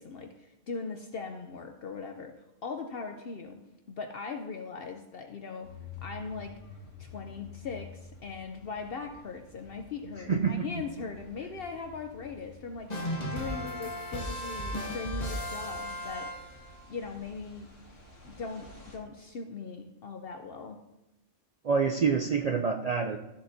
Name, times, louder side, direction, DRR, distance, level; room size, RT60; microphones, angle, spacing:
voice 1, 0.0-2.3 2.6-3.6 3.9-5.7 6.0-6.6 7.0-16.3 16.9-17.7 18.2-20.8, left 4 dB, 60° left, 5 dB, 0.8 m, -40 dB
sound 1, 5.6-19.0, left 4 dB, 85° left, 2.4 m, -51 dB
voice 2, 10.3-10.7 21.6-23.2, right 5 dB, 65° right, 4 dB, 0.3 m, -27 dB
sound 2, 12.9-16.8, equal, 35° left, 1.2 m, -35 dB
13.5 x 7.9 x 2.7 m, 0.97 s
omnidirectional pair, 1.3 m